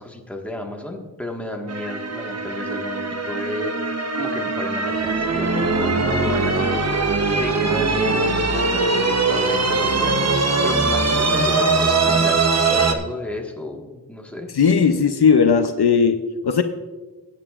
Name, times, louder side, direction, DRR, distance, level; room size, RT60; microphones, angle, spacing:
voice 1, 0.0-14.5, left 1 dB, 5° left, 0 dB, 1.6 m, -32 dB
sound 1, 1.7-12.9, right 3 dB, 40° right, 1.0 m, -21 dB
voice 2, 14.5-16.6, left 6 dB, 65° left, 8 dB, 0.7 m, -17 dB
20.0 x 9.2 x 2.5 m, 1.2 s
wide cardioid pair, 90°, 42 cm